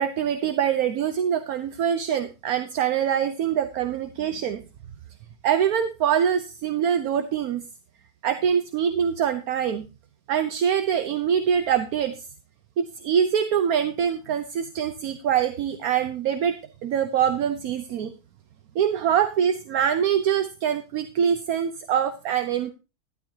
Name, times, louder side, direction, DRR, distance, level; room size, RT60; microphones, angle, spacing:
voice 1, 0.0-4.6 5.4-7.6 8.2-9.9 10.3-12.1 12.8-18.1 18.7-22.7, right 8 dB, 70° right, 10 dB, 1.2 m, -24 dB
11.5 x 11.5 x 2.7 m, 0.30 s
omnidirectional pair, 1.6 m